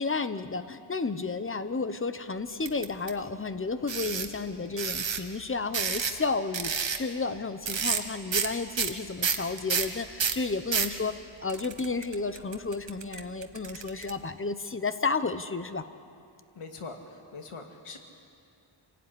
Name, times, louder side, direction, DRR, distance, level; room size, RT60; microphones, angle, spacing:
voice 1, 0.0-11.1 11.4-15.8, left 4 dB, 25° left, 11 dB, 1.0 m, -32 dB
sound 1, 2.7-3.1 3.9-4.3 4.8-5.2 5.7-6.2 6.5-7.0 7.7-8.0 8.3-8.5 8.8-10.9 11.5-14.1, right 6 dB, 60° right, 1.6 m, -29 dB
voice 2, 16.6-17.0 17.3-18.0, left 4 dB, 85° left, 4 dB, 2.3 m, -41 dB
27.0 x 17.5 x 9.9 m, 2.5 s
wide cardioid pair, 135°, 50 cm